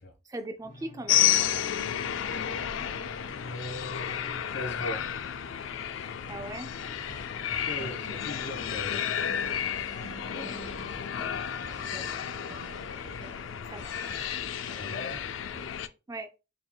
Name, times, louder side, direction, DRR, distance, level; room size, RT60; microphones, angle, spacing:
voice 1, 0.3-1.4 6.3-6.7 10.3-10.8 11.8-12.1 13.7-14.3 16.1-16.3, right 1 dB, 20° right, 0.3 m, -40 dB
sound 1, 0.6-12.2, left 1 dB, 40° left, 1.0 m, -48 dB
sound 2, 1.1-15.9, left 10 dB, 85° left, 0.4 m, -32 dB
voice 2, 3.4-5.0 7.7-9.1 14.6-15.2, left 1 dB, 65° left, 1.2 m, -39 dB
sound 3, 7.0-15.7, right 1 dB, 75° right, 1.2 m, -50 dB
5.2 x 3.7 x 2.3 m
head